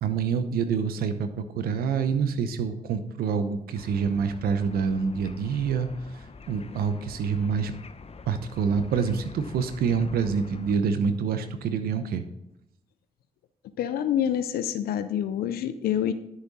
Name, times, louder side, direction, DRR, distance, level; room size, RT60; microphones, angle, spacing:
voice 1, 0.0-5.9 6.5-7.7 8.3-12.2, right 6 dB, 80° right, 10 dB, 0.8 m, -26 dB
sound 1, 3.7-10.8, left 4 dB, 40° left, 0.8 m, -46 dB
voice 2, 13.8-16.1, left 10 dB, 80° left, 12 dB, 0.5 m, -27 dB
11.0 x 7.0 x 4.1 m, 0.83 s
hypercardioid pair, 40°, 16 cm